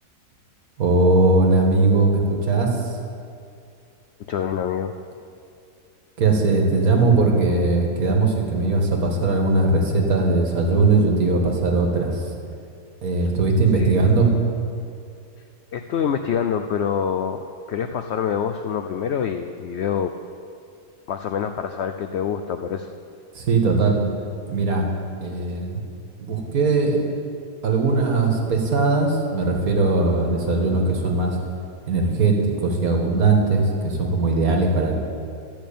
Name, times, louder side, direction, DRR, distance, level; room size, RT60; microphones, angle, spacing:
voice 1, 0.8-3.0 6.2-12.3 13.0-14.3 23.3-24.0 24.5-24.9 25.2-25.8 26.2-27.0 27.6-31.4 31.9-34.9, right 3 dB, 65° right, 1 dB, 2.0 m, -19 dB
voice 2, 4.3-4.9 13.8-14.1 15.7-17.4 17.7-20.1 21.1-22.9, left 7 dB, 85° left, 8 dB, 0.5 m, -26 dB
12.5 x 6.1 x 8.5 m, 2.4 s
omnidirectional pair, 1.7 m